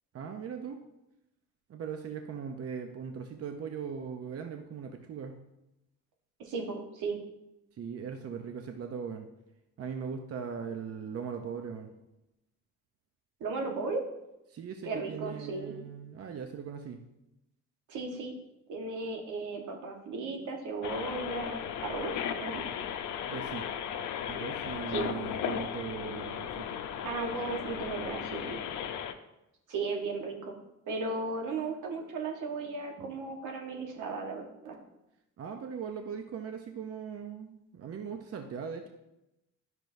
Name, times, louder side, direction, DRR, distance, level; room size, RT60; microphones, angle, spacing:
voice 1, 0.1-0.8 1.7-5.4 7.7-9.3 9.8-11.9 14.5-17.0 23.3-23.6 24.3-26.7 33.0-33.1 35.4-38.9, right 6 dB, 50° right, 5 dB, 0.7 m, -39 dB
voice 2, 6.4-7.2 13.4-14.0 14.8-15.7 17.9-18.3 18.7-22.1 22.4-22.6 24.9-25.1 27.0-28.6 29.7-30.5 30.9-34.8, right 3 dB, 85° right, 2 dB, 1.4 m, -35 dB
sound 1, 20.8-29.1, left 8 dB, 75° left, 0.7 m, -36 dB
10.5 x 6.1 x 2.7 m, 0.90 s
cardioid pair, 90°, 30 cm